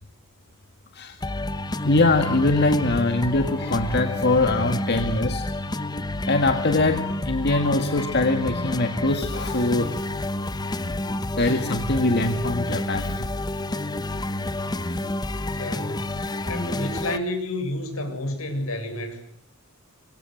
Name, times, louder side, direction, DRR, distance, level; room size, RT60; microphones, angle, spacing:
sound 1, 1.2-17.2, left 1 dB, 20° left, 1.0 m, -29 dB
voice 1, 1.8-5.5 6.3-10.1 11.1-13.3 14.9-15.1, left 2 dB, 50° left, 7 dB, 1.8 m, -23 dB
voice 2, 15.5-16.2 16.4-19.2, left 1 dB, 80° left, 7 dB, 7.5 m, -30 dB
26.0 x 25.0 x 7.8 m, 0.69 s
head